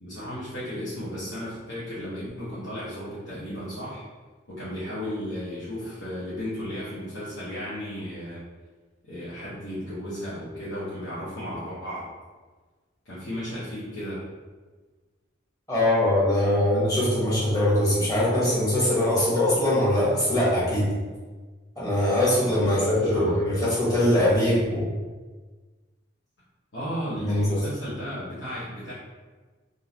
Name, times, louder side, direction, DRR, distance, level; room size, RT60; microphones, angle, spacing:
voice 1, 0.0-4.0 4.5-8.4 9.1-12.1 13.0-14.3 22.6-23.4 26.7-28.9, equal, 70° left, -12 dB, 1.0 m, -34 dB
voice 2, 15.7-20.9 21.8-24.9 27.2-27.6, left 1 dB, 20° left, -8 dB, 1.3 m, -22 dB
3.7 x 2.6 x 2.8 m, 1.4 s
head